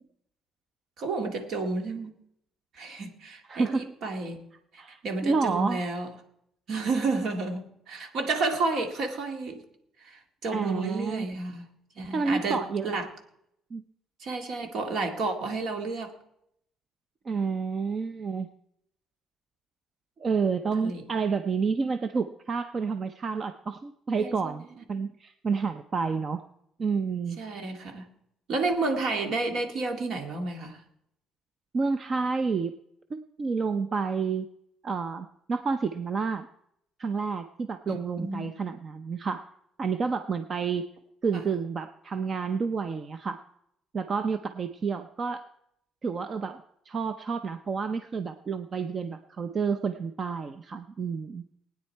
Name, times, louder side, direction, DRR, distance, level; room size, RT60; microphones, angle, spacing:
voice 1, 1.0-2.1 2.7-6.1 6.7-9.6 10.0-11.6 12.0-13.1 14.2-16.2 20.8-21.0 24.2-24.8 27.4-28.1 28.5-30.8 37.8-38.5 41.3-41.4, right 3 dB, 60° right, 5 dB, 2.1 m, -31 dB
voice 2, 3.5-3.9 4.8-5.8 10.5-11.3 12.1-12.9 13.7-13.8 17.3-18.5 20.2-26.5 26.8-27.4 31.7-32.7 33.1-34.5 34.8-36.5 37.0-39.5 39.8-40.9 41.2-43.4 43.9-45.4 46.0-51.4, right 5 dB, 35° right, 10 dB, 0.6 m, -29 dB
20.0 x 9.4 x 4.5 m, 0.77 s
cardioid pair, 130°, 0 cm